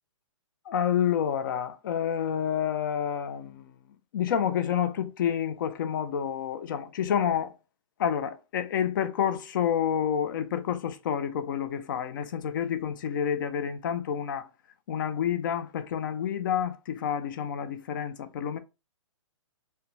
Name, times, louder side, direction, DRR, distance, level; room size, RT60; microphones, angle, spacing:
voice 1, 0.7-3.8 4.1-7.5 8.0-14.5 14.9-18.6, left 8 dB, 40° left, 0.4 m, -29 dB
2.4 x 2.1 x 2.9 m
hypercardioid pair, 150°, 17 cm